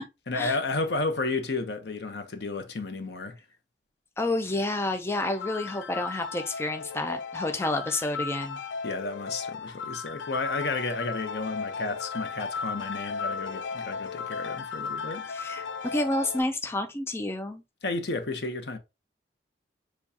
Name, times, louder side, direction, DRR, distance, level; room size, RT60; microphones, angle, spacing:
voice 1, 0.3-3.3 8.8-15.3 17.8-18.8, left 3 dB, 65° left, 0.8 m, -32 dB
voice 2, 4.2-8.6 15.3-17.6, left 2 dB, 15° left, 0.4 m, -29 dB
sound 1, 5.1-16.4, left 5 dB, 90° left, 0.4 m, -35 dB
6.9 x 2.3 x 2.7 m
head